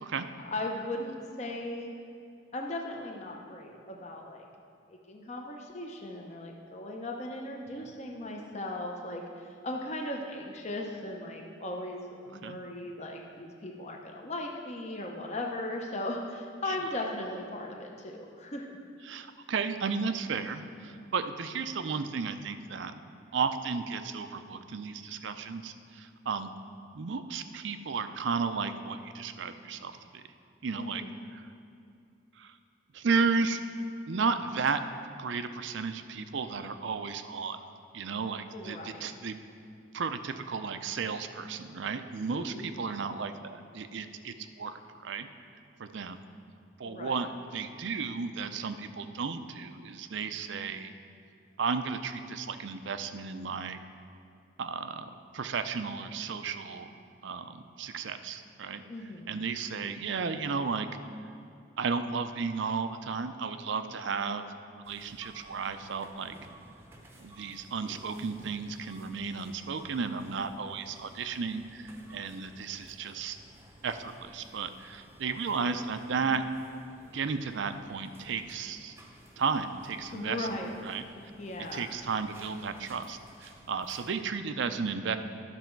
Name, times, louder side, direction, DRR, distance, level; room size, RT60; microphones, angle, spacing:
voice 1, 0.4-2.0 2.5-4.5 4.9-18.7 30.8-31.1 38.5-39.1 42.3-42.7 46.8-47.2 58.9-59.3 80.1-80.7 81.2-81.9, left 1 dB, 35° left, 1 dB, 0.7 m, -38 dB
voice 2, 19.1-22.9 23.3-26.5 26.9-30.2 30.6-31.0 31.3-31.4 32.4-32.6 32.9-33.6 34.1-34.8 35.2-37.6 37.9-39.4 39.9-45.3 45.8-46.2 46.8-50.9 51.6-53.8 54.6-56.9 57.2-58.8 59.3-60.9 61.8-64.4 64.7-66.3 67.2-73.4 73.8-76.4 77.1-78.9 79.4-80.5 80.8-81.0 81.7-85.2, right 5 dB, 65° right, 9 dB, 0.5 m, -33 dB
sound 1, 64.8-84.1, right 1 dB, 10° right, 0.7 m, -55 dB
11.5 x 6.3 x 4.5 m, 2.5 s
head